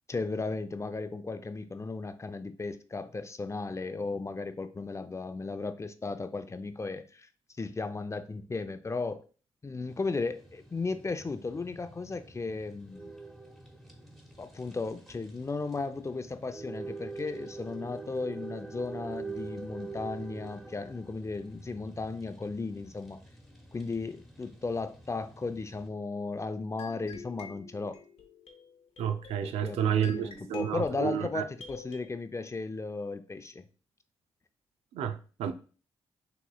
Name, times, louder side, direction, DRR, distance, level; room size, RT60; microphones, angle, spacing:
voice 1, 0.1-7.3 7.6-9.2 9.6-13.1 14.4-23.2 23.7-28.0 29.4-33.6, left 3 dB, 30° left, 0.5 m, -35 dB
sound 1, 9.9-25.9, right 3 dB, ahead, 1.2 m, -45 dB
sound 2, 26.8-32.0, left 5 dB, 75° left, 0.7 m, -49 dB
voice 2, 29.0-31.4 34.9-35.5, right 9 dB, 90° right, 0.4 m, -30 dB
5.8 x 3.0 x 2.3 m
supercardioid pair, 55°, 10 cm